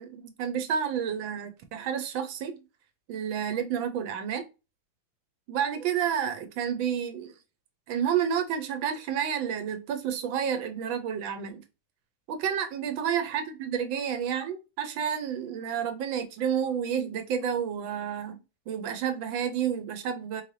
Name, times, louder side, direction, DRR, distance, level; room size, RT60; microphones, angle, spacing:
voice 1, 0.0-2.6 3.1-4.4 5.5-7.3 7.9-11.6 12.3-18.4 18.7-20.4, right 8 dB, 75° right, 1.4 m, -30 dB
4.4 x 3.3 x 2.6 m
omnidirectional pair, 2.2 m